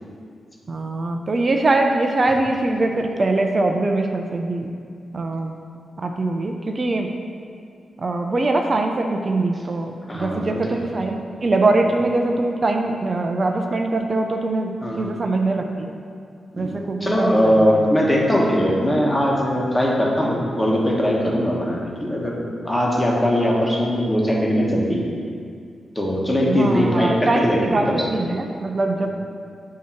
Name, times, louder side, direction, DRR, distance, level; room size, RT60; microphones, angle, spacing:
voice 1, 0.7-4.7 5.1-5.6 6.0-7.1 8.0-16.0 16.5-17.9 26.5-29.1, right 2 dB, 45° right, 3 dB, 0.5 m, -22 dB
voice 2, 10.1-10.8 14.8-15.0 16.6-22.4 22.6-25.0 25.9-28.0, equal, 15° left, -3 dB, 1.3 m, -20 dB
7.3 x 2.9 x 5.8 m, 2.3 s
cardioid pair, 65°, 0 cm